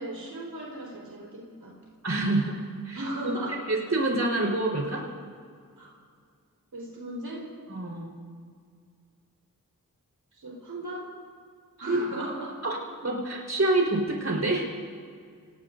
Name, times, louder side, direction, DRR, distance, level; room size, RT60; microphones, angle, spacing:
voice 1, 0.0-1.7 2.9-3.6 5.8-5.9 6.7-7.5 10.4-11.1 11.8-12.6, right 1 dB, 80° right, -3 dB, 4.3 m, -37 dB
voice 2, 2.0-3.3 3.7-5.0 7.7-8.2 11.8-12.0 12.6-12.8 13.0-14.7, right 2 dB, 45° right, -3 dB, 4.1 m, -27 dB
28.0 x 19.5 x 2.6 m, 2.2 s
cardioid pair, 40°, 35 cm